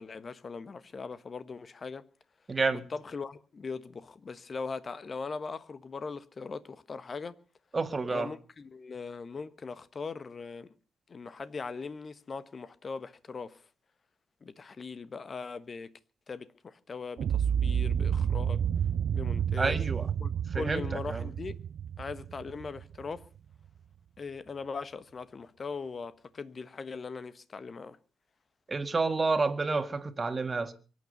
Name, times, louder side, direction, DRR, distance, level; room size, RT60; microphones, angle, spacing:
voice 1, 0.0-2.0 2.9-7.4 8.1-10.7 11.1-13.5 14.4-15.9 16.3-18.6 19.1-19.8 20.2-21.6 22.0-23.2 24.2-28.0, left 4 dB, 40° left, 1.3 m, -40 dB
voice 2, 2.5-2.9 7.7-8.3 19.6-20.1 20.5-21.3 28.7-30.7, right 3 dB, 30° right, 2.0 m, -29 dB
sound 1, 17.2-23.2, right 8 dB, 55° right, 0.7 m, -30 dB
24.0 x 9.6 x 5.4 m
hypercardioid pair, 45°, 0 cm